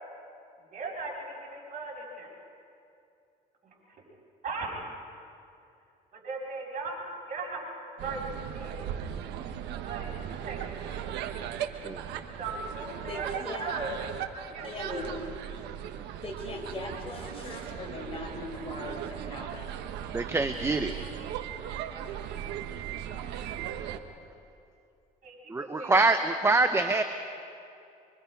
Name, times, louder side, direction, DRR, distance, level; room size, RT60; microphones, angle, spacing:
voice 1, 0.7-2.3 3.6-4.0 4.4-4.7 6.1-7.0 7.3-8.2 8.5-8.9 9.8-11.4 12.4-14.0 14.4-15.1 25.2-25.9, right 3 dB, 50° right, -3 dB, 6.8 m, -38 dB
sound 1, 8.0-24.0, right 10 dB, 85° right, 1.2 m, -38 dB
voice 2, 13.1-13.7 14.6-15.1 16.2-19.7, left 2 dB, 35° left, 0 dB, 4.7 m, -39 dB
voice 3, 20.1-21.0 25.5-27.0, right 3 dB, 15° right, 8 dB, 0.8 m, -25 dB
25.0 x 24.0 x 5.2 m, 2.6 s
cardioid pair, 110°, 17 cm